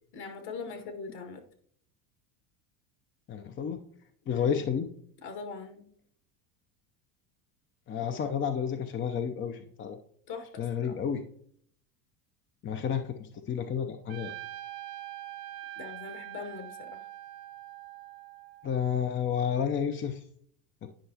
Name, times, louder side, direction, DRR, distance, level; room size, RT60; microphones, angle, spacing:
voice 1, 0.1-1.4 4.3-4.6 5.2-5.8 10.3-11.0 15.8-17.0, left 4 dB, 55° left, 5 dB, 1.9 m, -41 dB
voice 2, 3.3-3.8 4.3-4.9 7.9-10.0 10.6-11.2 12.6-14.3 18.6-20.2, left 8 dB, 25° left, 7 dB, 0.6 m, -31 dB
Trumpet, 14.1-18.8, right 14 dB, 85° right, 1.2 m, -43 dB
10.0 x 5.4 x 2.8 m, 0.62 s
hypercardioid pair, 85°, 47 cm